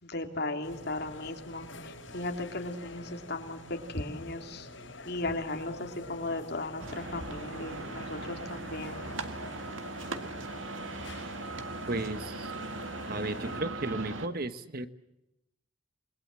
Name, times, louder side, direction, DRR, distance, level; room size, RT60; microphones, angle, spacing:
voice 1, 0.0-4.7 5.0-9.0, left 2 dB, 60° left, 4 dB, 3.1 m, -36 dB
sound 1, 0.6-13.6, left 2 dB, 80° left, 5.4 m, -47 dB
sound 2, 6.8-14.3, right 3 dB, 90° right, 1.9 m, -39 dB
voice 2, 11.9-12.5 13.1-14.9, right 2 dB, 50° right, 11 dB, 1.4 m, -34 dB
28.0 x 22.0 x 7.6 m, 0.90 s
head